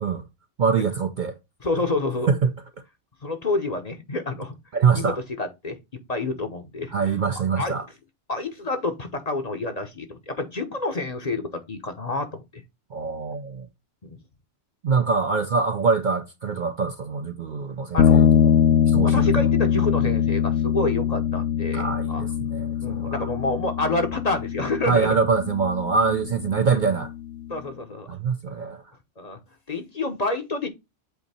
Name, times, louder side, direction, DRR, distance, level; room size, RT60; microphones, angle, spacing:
voice 1, 0.6-1.3 2.3-2.5 4.7-5.2 6.9-7.8 12.9-13.7 14.8-18.5 18.9-19.2 21.7-23.3 24.9-27.1 28.1-28.8, right 5 dB, 50° right, 0.6 m, -24 dB
voice 2, 1.6-2.3 3.2-4.6 4.9-5.8 6.1-7.2 7.6-7.7 8.3-12.6 14.0-14.2 17.9-18.3 19.0-22.2 22.8-25.1 27.5-28.1 29.2-29.4 29.7-30.7, left 2 dB, 35° left, 0.9 m, -28 dB
sound 1, 18.0-27.5, left 8 dB, 70° left, 0.9 m, -22 dB
8.1 x 2.8 x 4.2 m
omnidirectional pair, 1.2 m